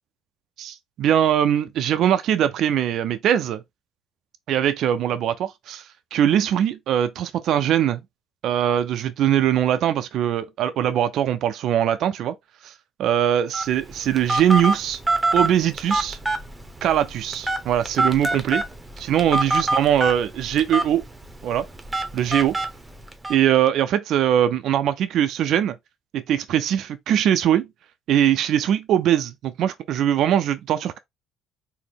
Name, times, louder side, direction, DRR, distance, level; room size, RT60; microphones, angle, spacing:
voice 1, 0.6-3.6 4.5-5.8 6.1-8.0 8.4-12.3 12.6-12.7 13.0-15.0 15.3-16.2 16.8-18.6 19.0-21.1 21.4-21.7 22.1-22.6 23.3-25.7 26.1-27.7 28.1-31.0, right 10 dB, 60° right, 0.5 m, -21 dB
Telephone, 13.5-23.3, right 2 dB, 15° right, 0.8 m, -26 dB
4.1 x 2.1 x 3.4 m
hypercardioid pair, 60°, 0 cm